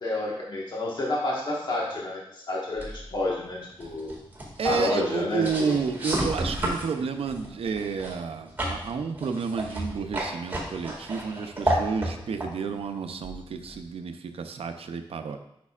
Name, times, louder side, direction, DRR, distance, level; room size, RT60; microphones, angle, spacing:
voice 1, 0.0-4.1 4.6-5.8, left 2 dB, 50° left, -4 dB, 1.4 m, -29 dB
sound 1, 2.8-13.9, right 1 dB, 20° right, 2.0 m, -33 dB
voice 2, 4.6-15.4, right 5 dB, 85° right, 7 dB, 0.6 m, -31 dB
8.4 x 6.0 x 2.4 m, 0.77 s
wide cardioid pair, 130°, 10 cm